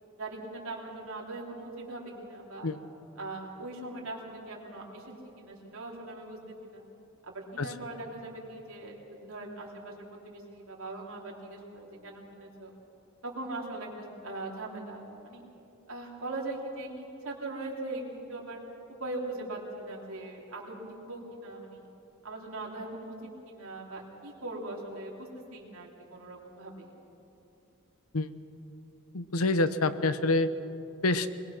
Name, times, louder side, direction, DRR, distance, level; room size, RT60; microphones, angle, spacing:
voice 1, 0.2-2.7 3.2-6.8 7.3-12.7 13.2-15.4 15.9-18.6 19.0-21.9 22.2-26.9, right 2 dB, 70° right, -2 dB, 3.6 m, -40 dB
voice 2, 29.1-30.5 31.0-31.3, left 2 dB, 85° left, 12 dB, 0.9 m, -26 dB
22.0 x 21.5 x 6.1 m, 2.8 s
head